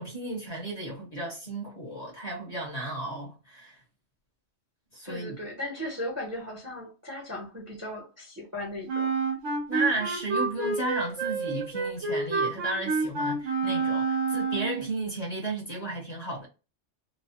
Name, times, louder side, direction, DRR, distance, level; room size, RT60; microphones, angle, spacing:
voice 1, 0.0-3.8 4.9-5.4 9.7-16.5, right 2 dB, 40° left, 0.8 m, -34 dB
voice 2, 5.0-9.1, left 1 dB, 20° right, 0.6 m, -37 dB
Wind instrument woodwind instrument, 8.9-14.9, right 4 dB, 85° right, 1.2 m, -28 dB
3.1 x 2.0 x 2.7 m
omnidirectional pair, 1.3 m